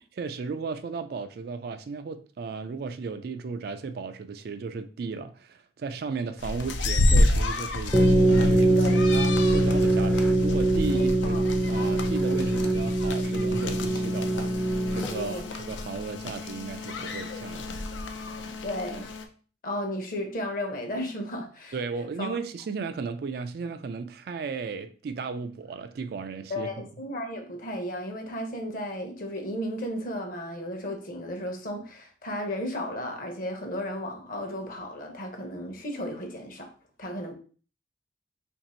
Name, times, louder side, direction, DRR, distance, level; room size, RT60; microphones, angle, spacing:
voice 1, 0.2-14.5 14.9-17.7 21.7-26.9, right 5 dB, 55° right, 0.3 m, -35 dB
sound 1, 6.4-19.3, left 1 dB, 85° left, 0.5 m, -30 dB
sound 2, 7.9-15.4, right 1 dB, 10° left, 0.4 m, -23 dB
voice 2, 10.9-11.4 15.1-15.5 18.6-19.1 19.6-21.8 22.2-22.3 26.5-36.7 37.0-37.3, left 1 dB, 50° left, 0.8 m, -34 dB
2.9 x 2.6 x 4.2 m
head